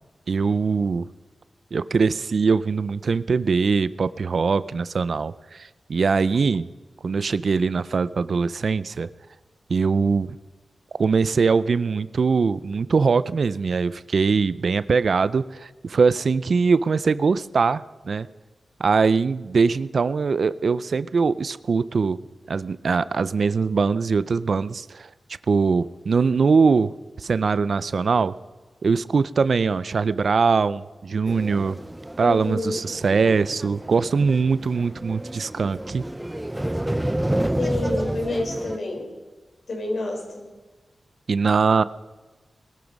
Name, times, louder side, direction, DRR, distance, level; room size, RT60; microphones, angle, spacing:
voice 1, 0.3-1.1 1.7-6.7 7.0-9.1 9.7-10.4 11.0-18.3 18.8-22.2 22.5-25.1 25.5-28.4 28.8-31.8 32.2-36.0 41.3-41.8, right 5 dB, 65° right, 16 dB, 0.5 m, -22 dB
sound 1, 31.3-38.8, right 1 dB, 10° right, 0.6 m, -30 dB
voice 2, 32.2-32.8 37.6-39.1 39.7-40.5, left 2 dB, 65° left, 2 dB, 4.6 m, -28 dB
20.5 x 13.5 x 5.3 m, 1.2 s
wide cardioid pair, 90°, 0 cm